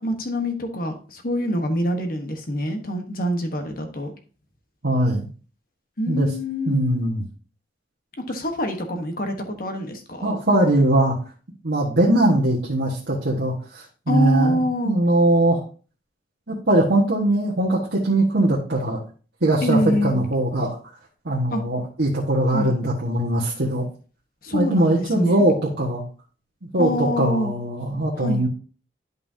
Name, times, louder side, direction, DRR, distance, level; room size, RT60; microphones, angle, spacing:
voice 1, 0.0-4.1 6.0-7.0 8.2-10.4 14.1-14.9 19.6-20.2 21.5-21.6 22.5-22.8 24.4-25.4 26.8-27.5 28.2-28.5, equal, 50° left, 5 dB, 1.2 m, -25 dB
voice 2, 4.8-5.3 6.1-6.3 6.7-7.2 10.2-11.2 11.6-15.6 16.5-19.0 19.4-20.8 21.2-23.8 24.5-26.0 26.6-28.5, right 1 dB, 70° right, -5 dB, 1.5 m, -21 dB
11.0 x 5.5 x 2.8 m, 0.37 s
head